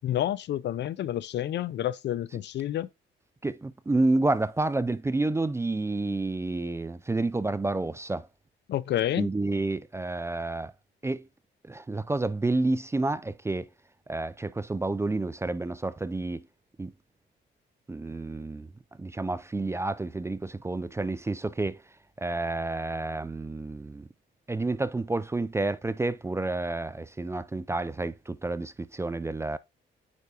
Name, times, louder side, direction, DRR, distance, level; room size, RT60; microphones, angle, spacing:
voice 1, 0.0-2.9 8.7-9.3, left 12 dB, 60° left, 0.5 m, -29 dB
voice 2, 3.4-8.3 9.2-10.7 11.0-11.3 11.7-13.7 14.1-16.4 16.8-16.9 17.9-18.7 19.0-21.8 22.2-24.1 24.5-29.6, right 2 dB, 15° right, 0.4 m, -29 dB
8.4 x 4.7 x 2.8 m
cardioid pair, 90°, 20 cm